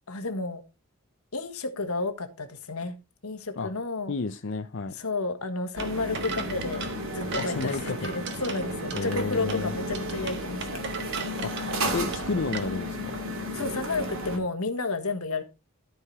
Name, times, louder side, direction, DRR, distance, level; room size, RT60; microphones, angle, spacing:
voice 1, 0.1-0.6 1.3-2.9 3.2-4.1 4.9-11.1 13.5-15.4, left 3 dB, 90° left, 8 dB, 1.6 m, -32 dB
voice 2, 4.1-4.9 7.4-8.1 8.9-9.7 11.4-11.5 11.9-13.2, left 4 dB, 55° left, 8 dB, 0.5 m, -31 dB
sound 1, 5.8-12.6, right 5 dB, 55° right, 1.4 m, -38 dB
sound 2, 5.8-14.4, equal, 70° right, 2.4 m, -33 dB
13.0 x 4.8 x 4.7 m, 0.27 s
head